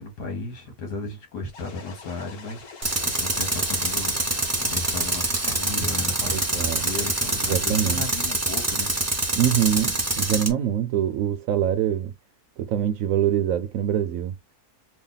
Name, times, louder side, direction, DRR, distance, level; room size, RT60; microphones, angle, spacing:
voice 1, 0.0-8.9, left 3 dB, 80° left, 1.7 m, -35 dB
sound 1, 1.5-8.0, left 5 dB, 65° left, 1.4 m, -44 dB
Tools, 2.8-10.5, right 2 dB, 25° right, 0.4 m, -25 dB
voice 2, 6.3-6.8 7.4-8.0 9.4-12.1 12.6-14.4, right 10 dB, 70° right, 0.8 m, -24 dB
3.5 x 2.3 x 3.8 m
omnidirectional pair, 1.7 m